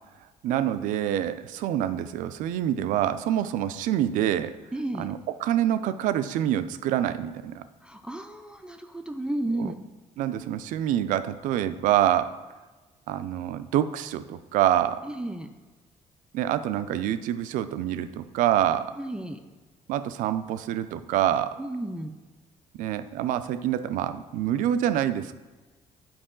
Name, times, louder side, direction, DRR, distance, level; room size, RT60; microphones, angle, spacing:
voice 1, 0.4-4.6 5.0-7.6 9.6-9.7 10.2-12.4 13.1-15.0 16.3-18.9 19.9-21.6 22.8-25.3, right 11 dB, 85° right, 12 dB, 0.4 m, -26 dB
voice 2, 4.7-5.1 7.8-9.8 15.0-15.5 19.0-19.4 21.6-22.1, right 1 dB, 5° right, 6 dB, 0.4 m, -33 dB
8.7 x 4.7 x 3.8 m, 1.2 s
cardioid pair, 105°, 13 cm